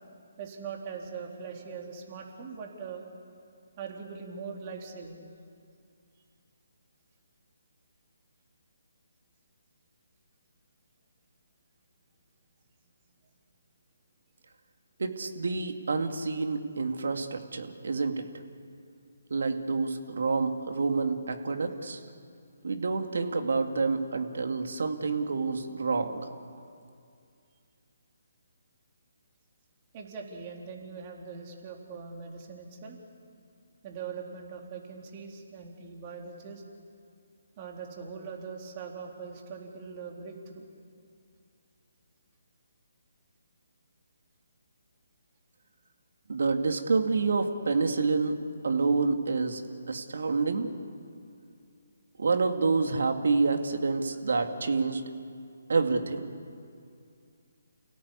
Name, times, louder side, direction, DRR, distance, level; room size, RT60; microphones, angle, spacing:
voice 1, 0.4-3.0 3.8-5.2 29.9-33.0 33.8-36.6 37.6-40.7, right 5 dB, 30° right, 1 dB, 3.6 m, -41 dB
voice 2, 15.0-18.3 19.3-22.0 22.6-26.2 46.3-48.4 48.6-49.6 49.9-50.7 52.2-55.0 55.7-56.3, right 4 dB, 65° right, 5 dB, 2.4 m, -28 dB
30.0 x 17.5 x 8.4 m, 2.4 s
figure-of-eight pair, 145°, 0 cm